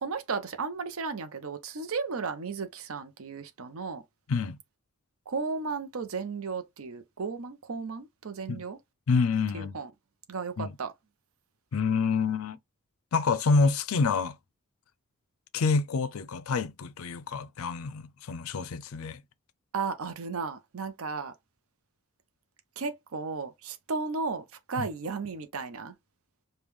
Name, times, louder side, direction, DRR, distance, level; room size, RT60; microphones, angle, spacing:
voice 1, 0.0-4.0 5.3-8.8 9.5-9.9 10.3-10.9 19.7-21.3 22.8-25.9, right 4 dB, 65° right, 0.6 m, -34 dB
voice 2, 9.1-9.8 10.6-10.7 11.7-12.6 13.1-14.4 15.5-19.2 24.8-24.9, left 4 dB, 70° left, 0.4 m, -27 dB
5.1 x 2.2 x 3.1 m
head